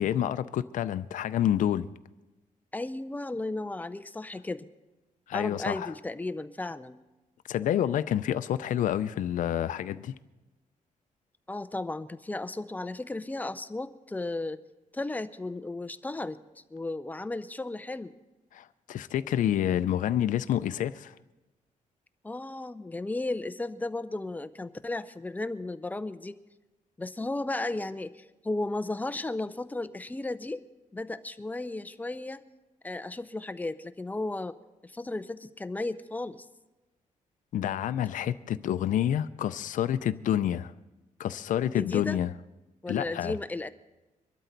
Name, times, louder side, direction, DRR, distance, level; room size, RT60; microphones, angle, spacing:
voice 1, 0.0-1.9 5.3-5.9 7.5-10.1 18.5-21.1 37.5-40.7 41.2-42.3 42.9-43.3, left 11 dB, 70° left, 0.5 m, -28 dB
voice 2, 2.7-4.7 5.3-7.0 11.5-14.6 14.9-16.4 16.7-18.1 22.2-26.4 27.0-30.6 30.9-32.4 32.8-34.6 34.8-36.5 41.7-42.2 42.8-43.7, left 2 dB, 10° left, 0.5 m, -34 dB
23.0 x 12.5 x 4.0 m
cardioid pair, 130°, 14 cm